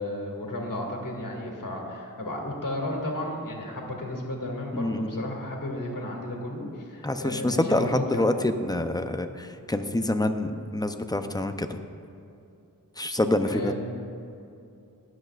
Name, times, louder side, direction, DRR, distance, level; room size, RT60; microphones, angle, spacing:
voice 1, 0.0-8.2 13.4-13.7, left 1 dB, 60° left, -1 dB, 2.2 m, -33 dB
voice 2, 4.7-5.2 7.0-11.8 13.0-13.7, left 1 dB, 10° left, 7 dB, 0.6 m, -26 dB
22.0 x 7.9 x 2.4 m, 2.7 s
wide cardioid pair, 90°, 36 cm